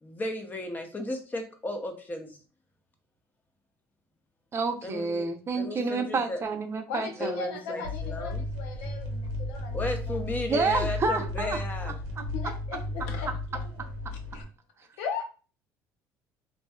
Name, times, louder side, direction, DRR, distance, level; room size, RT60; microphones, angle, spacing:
voice 1, 0.0-2.4 4.8-5.3 5.5-6.4 7.2-8.4 9.7-12.0, left 1 dB, 25° left, 0.7 m, -34 dB
voice 2, 4.5-7.8 10.5-11.6 12.2-12.3 13.3-13.4, right 4 dB, 35° right, 0.7 m, -29 dB
voice 3, 6.9-10.2 11.9-13.7 14.1-14.5 15.0-15.2, left 6 dB, 85° left, 0.6 m, -38 dB
sound 1, 7.8-14.4, left 2 dB, 90° right, 0.8 m, -34 dB
2.9 x 2.7 x 2.3 m
supercardioid pair, 85°, 8 cm